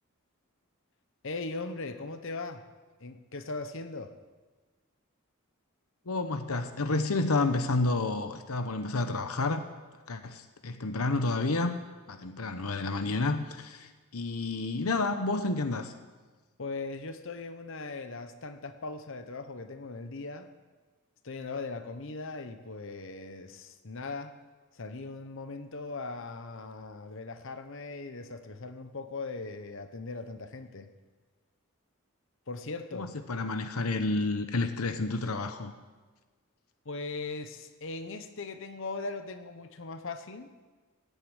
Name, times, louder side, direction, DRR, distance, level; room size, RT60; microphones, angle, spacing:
voice 1, 1.2-2.6 3.0-4.1 16.6-20.5 21.2-24.3 24.7-30.9 32.5-33.1 36.8-40.5, left 3 dB, 60° left, 9 dB, 1.0 m, -39 dB
voice 2, 6.1-9.6 10.1-11.8 12.1-15.9 32.9-35.7, left 3 dB, 85° left, 9 dB, 0.9 m, -30 dB
17.5 x 8.1 x 9.0 m, 1.4 s
head